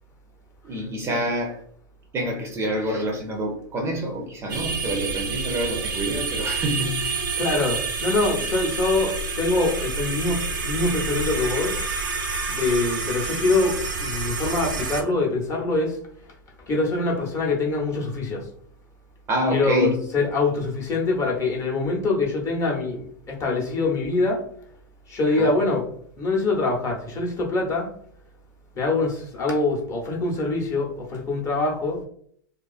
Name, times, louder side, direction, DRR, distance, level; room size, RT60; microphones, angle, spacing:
voice 1, 0.6-1.6 2.1-7.3 19.3-20.0 25.3-25.5, equal, 25° right, 2 dB, 0.5 m, -27 dB
sound 1, 4.5-15.0, right 4 dB, 70° right, 0.5 m, -28 dB
voice 2, 7.3-11.7 12.5-16.0 16.7-18.5 19.5-24.4 25.1-25.9 26.2-27.9 28.7-32.0, left 3 dB, 25° left, -1 dB, 0.7 m, -24 dB
2.4 x 2.3 x 2.4 m, 0.62 s
hypercardioid pair, 105°, 11 cm